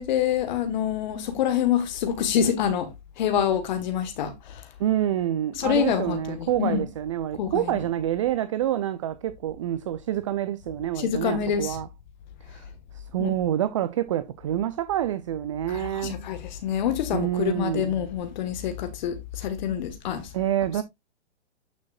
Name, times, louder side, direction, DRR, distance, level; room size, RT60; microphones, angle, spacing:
voice 1, 0.0-2.9 3.2-4.7 5.5-6.9 7.4-7.8 11.0-11.8 13.2-13.3 15.7-20.3, left 9 dB, 40° left, 1.5 m, -26 dB
voice 2, 4.8-11.9 12.5-12.6 12.9-16.3 17.1-17.9 20.3-20.8, right 12 dB, 30° right, 0.5 m, -27 dB
9.3 x 6.4 x 2.4 m
figure-of-eight pair, 125°, 35 cm